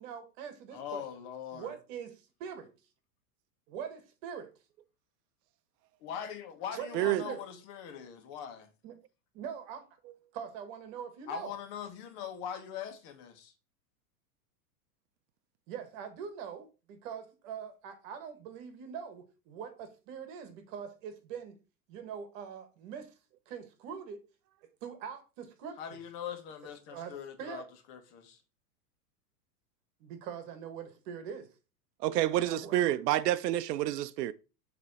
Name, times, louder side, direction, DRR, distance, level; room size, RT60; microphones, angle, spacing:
voice 1, 0.0-1.0 1.5-2.7 3.7-4.5 6.8-6.9 7.2-7.4 8.8-8.9 9.3-9.8 10.3-11.5 15.7-21.6 21.9-23.1 23.5-24.2 24.8-26.0 26.9-27.1 27.4-27.6 30.0-31.5 32.4-32.8, right 7 dB, 50° right, 1.6 m, -43 dB
voice 2, 0.7-1.8 6.0-8.7 11.3-13.5 25.8-28.4, left 8 dB, 45° left, 1.5 m, -42 dB
voice 3, 32.0-34.3, right 13 dB, 85° right, 0.5 m, -28 dB
7.5 x 3.3 x 4.1 m
supercardioid pair, 140°, 48 cm